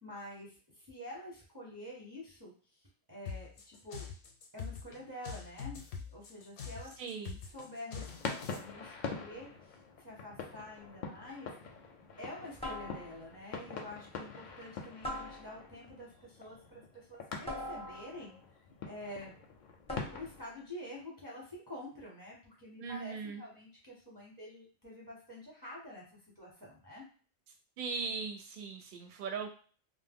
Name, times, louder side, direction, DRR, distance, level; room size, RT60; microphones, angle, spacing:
voice 1, 0.0-2.5 3.1-4.1 4.5-5.8 6.1-6.9 7.4-9.5 10.0-11.5 12.2-18.4 18.9-19.4 20.1-26.1 26.4-27.0, left 1 dB, 20° right, -5 dB, 0.7 m, -47 dB
sound 1, 3.3-8.6, left 6 dB, 85° left, 0.8 m, -44 dB
voice 2, 7.0-7.4 22.8-23.4 27.8-29.5, right 5 dB, 55° right, 4 dB, 0.6 m, -39 dB
sound 2, 7.9-20.4, left 4 dB, 60° left, 0.6 m, -45 dB
sound 3, 10.8-11.1 12.6-13.4 15.0-15.9 17.5-18.4 19.9-20.5, left 1 dB, 10° left, 0.4 m, -43 dB
2.1 x 2.0 x 3.5 m, 0.40 s
omnidirectional pair, 1.1 m